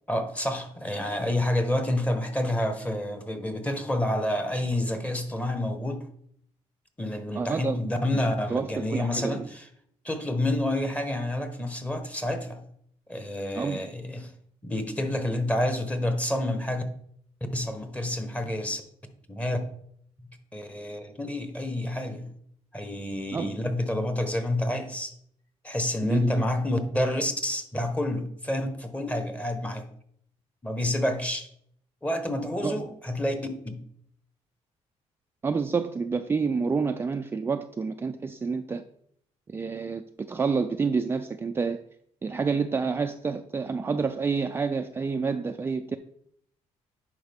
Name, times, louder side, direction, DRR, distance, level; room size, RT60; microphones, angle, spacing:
voice 1, 0.1-6.0 7.0-9.6 10.0-12.6 13.1-14.3 14.6-16.8 17.5-18.8 19.3-19.6 20.5-22.3 22.7-25.1 25.6-29.9 30.6-31.5 32.0-33.4 33.6-33.8, left 1 dB, 10° left, 6 dB, 1.1 m, -28 dB
voice 2, 7.3-7.8 8.5-9.5 13.6-13.9 23.3-23.6 26.0-26.5 32.6-32.9 35.4-38.8 39.5-41.8 42.2-46.0, right 5 dB, 20° right, 6 dB, 0.3 m, -28 dB
10.0 x 4.8 x 3.5 m, 0.67 s
cardioid pair, 120°, 12 cm